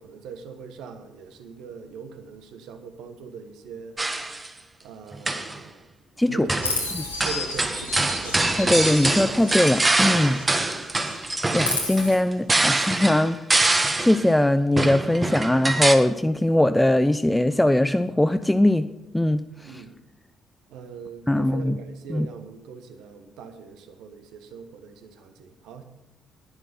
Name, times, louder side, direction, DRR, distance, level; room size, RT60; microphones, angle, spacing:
voice 1, 0.0-4.0 4.8-5.8 6.3-6.7 7.2-7.7 8.1-8.5 19.6-19.9 20.7-25.8, right 6 dB, 60° right, 8 dB, 1.2 m, -41 dB
sound 1, 4.0-4.5 5.1-5.6 6.5-6.8 7.2-14.3 14.8-16.0, right 2 dB, 20° right, 1.3 m, -24 dB
Chirp tweet, 6.6-10.6 10.9-12.1, left 2 dB, 85° left, 1.5 m, -33 dB
voice 2, 8.6-10.4 11.5-18.9 19.1-19.8 21.3-21.8 22.1-22.3, left 1 dB, 10° left, 11 dB, 0.5 m, -21 dB
11.0 x 10.0 x 5.5 m, 0.89 s
figure-of-eight pair, 45°, 0 cm